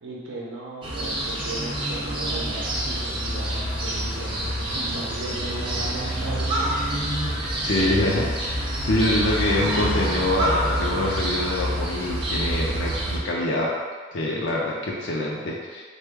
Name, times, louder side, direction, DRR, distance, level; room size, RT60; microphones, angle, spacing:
voice 1, 0.0-6.8, right 2 dB, 75° right, -3 dB, 0.6 m, -37 dB
sound 1, 0.8-13.2, right 1 dB, 25° right, 0.6 m, -27 dB
voice 2, 7.6-8.3 8.8-13.7 14.1-15.8, left 1 dB, 70° left, -4 dB, 0.5 m, -25 dB
3.7 x 2.2 x 3.4 m, 1.5 s
head